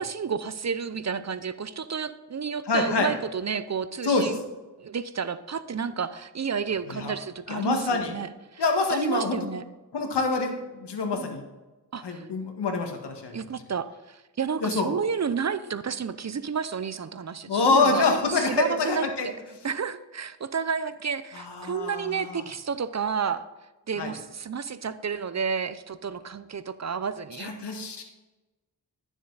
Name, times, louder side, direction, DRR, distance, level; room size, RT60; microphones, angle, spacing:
voice 1, 0.0-4.4 4.8-8.6 8.9-9.6 11.2-11.3 11.9-12.3 13.3-18.1 18.4-19.1 19.6-23.4 23.9-27.8, right 6 dB, 40° right, 14 dB, 0.7 m, -31 dB
voice 2, 2.7-3.1 4.0-4.3 6.9-7.1 7.5-8.1 8.6-9.5 9.9-11.4 12.0-13.4 14.6-14.9 17.5-19.3 21.3-22.4 24.0-24.1 27.4-28.0, left 3 dB, 85° left, 4 dB, 1.8 m, -26 dB
12.0 x 7.2 x 4.0 m, 1.1 s
cardioid pair, 60°, 40 cm